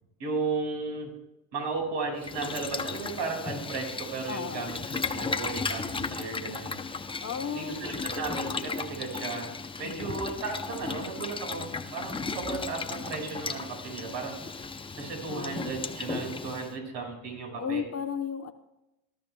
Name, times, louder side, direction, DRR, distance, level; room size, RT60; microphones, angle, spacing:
voice 1, 0.2-1.1 1.5-6.8 7.6-14.6 15.0-17.8, right 4 dB, 65° right, 1 dB, 5.5 m, -35 dB
Boiling, 2.2-16.7, left 4 dB, 10° left, 0.6 m, -35 dB
voice 2, 4.3-4.9 7.2-8.7 9.8-10.1 15.3-15.6 17.6-18.5, left 7 dB, 35° left, 6 dB, 1.0 m, -35 dB
19.5 x 12.5 x 2.3 m, 0.92 s
supercardioid pair, 115°, 44 cm